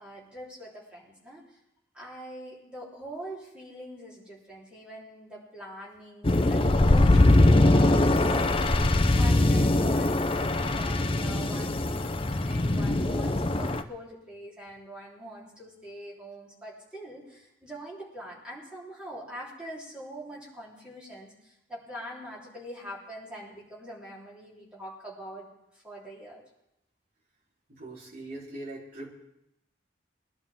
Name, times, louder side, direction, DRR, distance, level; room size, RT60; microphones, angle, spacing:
voice 1, 0.0-1.6 1.9-8.9 9.1-25.5 25.7-26.4, equal, 5° right, -7 dB, 3.7 m, -43 dB
sound 1, 6.2-13.8, left 2 dB, 25° left, 0.6 m, -22 dB
voice 2, 27.7-29.1, right 2 dB, 45° right, -4 dB, 3.6 m, -41 dB
21.5 x 11.5 x 3.6 m, 0.86 s
head